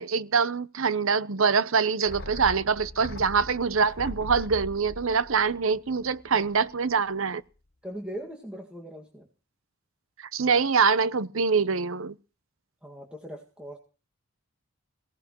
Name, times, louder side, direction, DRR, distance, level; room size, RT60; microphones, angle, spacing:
voice 1, 0.0-7.4 10.2-12.2, right 5 dB, 70° right, 0.8 m, -24 dB
sound 1, 2.0-6.6 6.9-7.0, left 2 dB, 50° left, 1.0 m, -41 dB
voice 2, 7.8-9.3 12.8-13.8, equal, 5° right, 1.8 m, -40 dB
23.0 x 17.5 x 3.0 m
head